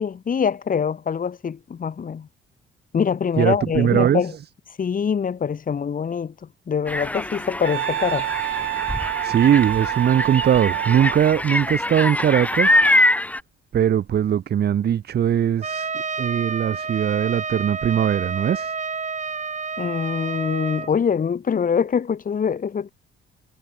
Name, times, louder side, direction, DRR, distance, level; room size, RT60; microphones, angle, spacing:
voice 1, 0.0-2.3 2.9-4.3 4.8-6.3 6.7-8.3 19.8-22.9, left 7 dB, 45° left, 2.7 m, -24 dB
voice 2, 3.4-4.2 9.2-12.8 13.7-15.9 16.2-18.7, right 9 dB, 55° right, 1.2 m, -20 dB
sound 1, 6.9-13.4, left 1 dB, 5° left, 1.5 m, -24 dB
Wind instrument woodwind instrument, 7.6-11.3, right 15 dB, 85° right, 1.3 m, -27 dB
Trumpet, 15.6-20.9, right 5 dB, 35° right, 6.5 m, -29 dB
cardioid pair, 90°, 20 cm